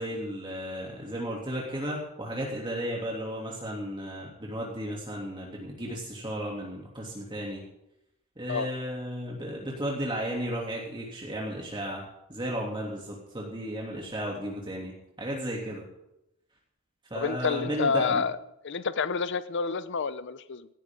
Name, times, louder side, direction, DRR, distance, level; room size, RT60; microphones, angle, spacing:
voice 1, 0.0-7.6 8.4-15.8 17.1-18.2, equal, 25° right, -3 dB, 3.0 m, -34 dB
voice 2, 17.1-18.4 18.6-20.7, left 5 dB, 60° left, 14 dB, 0.6 m, -29 dB
18.0 x 16.0 x 3.9 m, 0.86 s
head